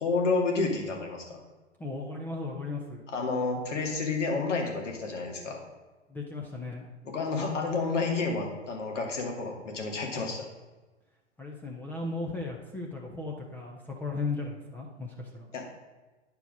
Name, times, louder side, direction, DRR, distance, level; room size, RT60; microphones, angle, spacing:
voice 1, 0.0-1.4 3.1-5.6 7.0-10.5 15.5-15.7, left 3 dB, 75° left, 1 dB, 2.2 m, -30 dB
voice 2, 1.8-3.0 6.1-6.9 11.4-15.5, left 3 dB, 5° left, -1 dB, 0.4 m, -36 dB
9.9 x 4.6 x 5.2 m, 1.2 s
hypercardioid pair, 125°, 36 cm